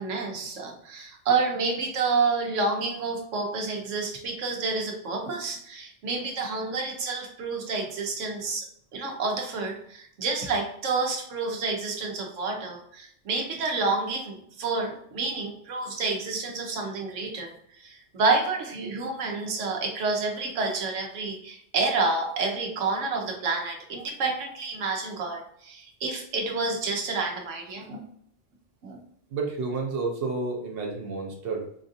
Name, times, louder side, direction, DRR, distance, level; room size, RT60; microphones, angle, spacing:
voice 1, 0.0-8.7 8.9-17.5 17.8-28.0 28.8-29.0, right 3 dB, 90° right, 1 dB, 1.1 m, -29 dB
voice 2, 29.3-31.7, right 3 dB, 55° right, 1 dB, 0.9 m, -30 dB
5.0 x 2.5 x 2.6 m, 0.65 s
omnidirectional pair, 1.2 m